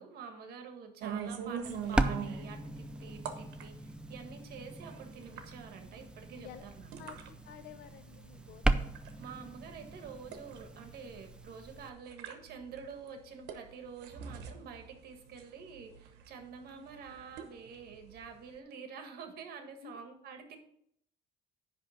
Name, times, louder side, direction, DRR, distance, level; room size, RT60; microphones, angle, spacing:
voice 1, 0.0-6.9 9.2-20.6, right 6 dB, 65° right, 5 dB, 1.5 m, -48 dB
sound 1, 1.0-18.6, right 7 dB, 90° right, 1.0 m, -46 dB
sound 2, 1.6-11.9, right 2 dB, 5° right, 0.4 m, -37 dB
voice 2, 7.0-8.9 16.6-16.9 19.6-20.0, left 9 dB, 65° left, 11 dB, 0.8 m, -52 dB
9.9 x 3.3 x 6.3 m, 0.71 s
cardioid pair, 110°, 17 cm